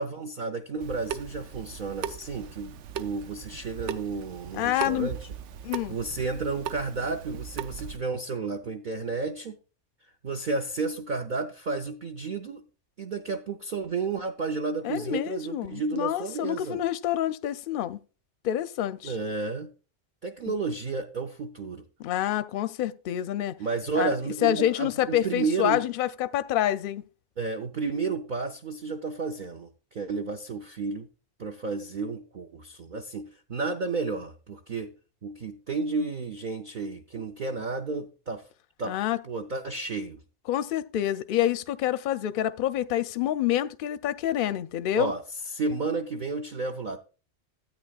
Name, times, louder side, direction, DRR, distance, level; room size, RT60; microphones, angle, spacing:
voice 1, 0.0-5.3 5.9-9.6 10.2-12.7 13.0-16.8 19.0-19.7 20.2-21.9 23.6-25.8 27.4-31.1 31.4-34.9 35.2-38.4 38.8-39.0 39.2-40.2 44.9-45.2 45.5-47.0, right 4 dB, 50° right, 0.7 m, -32 dB
Water tap faucet / Sink (filling or washing) / Drip, 0.8-8.0, right 8 dB, 80° right, 0.9 m, -39 dB
voice 2, 4.5-5.1 5.6-6.0 14.8-18.0 18.4-19.1 20.5-20.6 22.0-23.5 24.0-24.1 24.4-27.0 38.8-39.2 40.5-45.1, left 12 dB, 60° left, 0.6 m, -27 dB
13.0 x 8.8 x 2.3 m
omnidirectional pair, 1.2 m